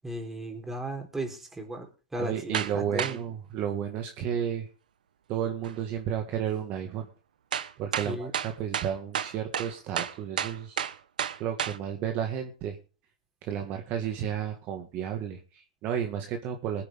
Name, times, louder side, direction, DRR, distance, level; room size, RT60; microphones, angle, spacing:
voice 1, 0.0-3.2 8.0-8.3, right 1 dB, 10° right, 3 dB, 4.1 m, -35 dB
voice 2, 2.2-4.7 5.3-7.1 7.8-10.8 11.4-12.8 13.4-16.8, right 9 dB, 40° right, 4 dB, 1.9 m, -32 dB
sound 1, 2.5-2.7 3.0-3.2 5.6-5.7 7.5-11.8, right 9 dB, 80° right, 1.1 m, -31 dB
20.5 x 9.8 x 3.7 m, 0.35 s
hypercardioid pair, 125°, 4 cm